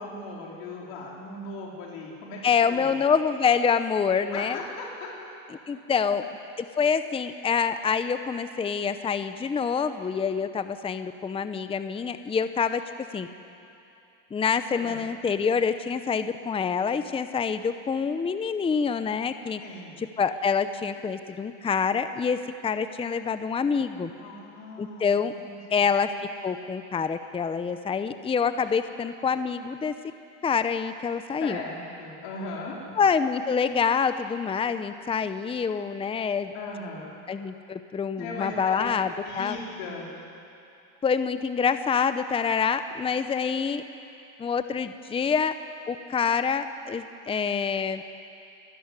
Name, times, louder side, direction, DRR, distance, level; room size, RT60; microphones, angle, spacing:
voice 1, 0.0-2.4 2.7-3.0 4.3-5.1 14.7-15.0 19.6-20.0 24.1-25.1 25.4-25.8 31.4-32.8 36.5-37.2 38.1-38.9 39.2-40.1, left 3 dB, 75° left, -3 dB, 4.7 m, -38 dB
voice 2, 2.4-4.6 5.7-6.3 6.6-12.8 13.1-13.3 14.3-19.6 20.0-24.1 24.8-25.3 25.7-26.1 26.4-29.9 30.4-31.6 33.0-36.5 37.3-39.6 41.0-43.8 44.4-45.6 45.9-48.0, left 6 dB, 15° left, 10 dB, 0.7 m, -26 dB
24.5 x 13.5 x 9.7 m, 2.7 s
supercardioid pair, 125°, 37 cm